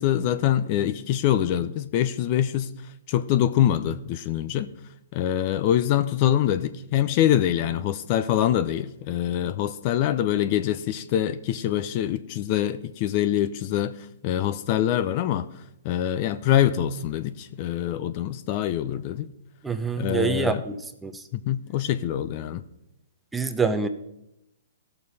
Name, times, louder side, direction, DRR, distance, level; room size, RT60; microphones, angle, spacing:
voice 1, 0.0-2.7 3.1-4.7 5.1-14.0 14.2-15.5 15.8-19.3 20.0-20.6 21.3-22.6, left 11 dB, 40° left, 12 dB, 0.6 m, -24 dB
voice 2, 19.6-20.8 21.0-21.2 23.3-23.9, right 5 dB, 10° right, 7 dB, 0.7 m, -25 dB
16.0 x 6.8 x 4.1 m, 0.86 s
hypercardioid pair, 135°, 0 cm